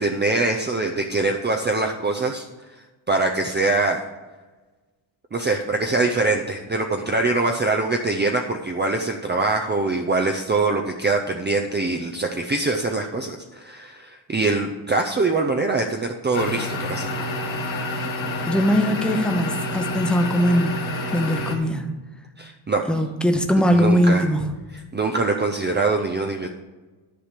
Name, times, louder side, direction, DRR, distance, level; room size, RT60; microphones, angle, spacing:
voice 1, 0.0-4.0 5.3-17.2 22.4-22.8 23.7-24.3 24.9-26.5, right 3 dB, 25° right, 3 dB, 0.6 m, -23 dB
sound 1, 16.3-21.6, left 1 dB, 80° left, 1.6 m, -28 dB
voice 2, 18.5-20.8 21.1-21.9 22.9-24.5, equal, ahead, 4 dB, 0.9 m, -20 dB
10.5 x 4.9 x 7.5 m, 1.2 s
wide cardioid pair, 125°, 46 cm